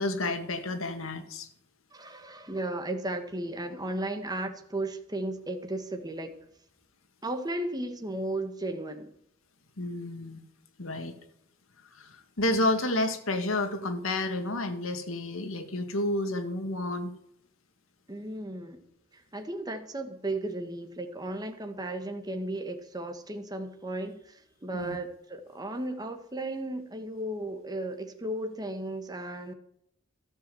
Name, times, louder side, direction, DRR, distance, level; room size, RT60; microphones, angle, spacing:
voice 1, 0.0-1.5 9.8-10.4 10.8-11.2 11.9-17.1 24.7-25.0, left 2 dB, 75° left, 1.8 m, -30 dB
voice 2, 1.9-6.4 7.2-9.1 18.1-18.8 19.1-29.5, right 1 dB, 20° right, 1.5 m, -35 dB
13.0 x 7.2 x 7.7 m
head